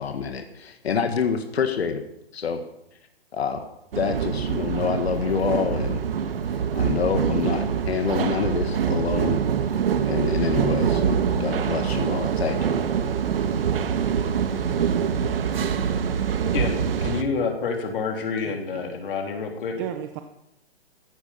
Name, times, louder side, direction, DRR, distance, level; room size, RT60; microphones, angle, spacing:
voice 1, 0.0-2.0 2.3-2.6 3.3-3.7 4.0-6.1 6.8-9.4 10.1-12.8, left 6 dB, 75° left, 6 dB, 1.9 m, -27 dB
sound 1, 3.9-17.2, right 7 dB, 65° right, 1.5 m, -24 dB
voice 2, 16.5-19.8, left 5 dB, 55° left, 3 dB, 3.5 m, -28 dB
voice 3, 18.4-19.0 19.8-20.2, right 11 dB, 20° right, 7 dB, 0.6 m, -35 dB
15.0 x 11.5 x 5.8 m, 0.81 s
hypercardioid pair, 155°, 31 cm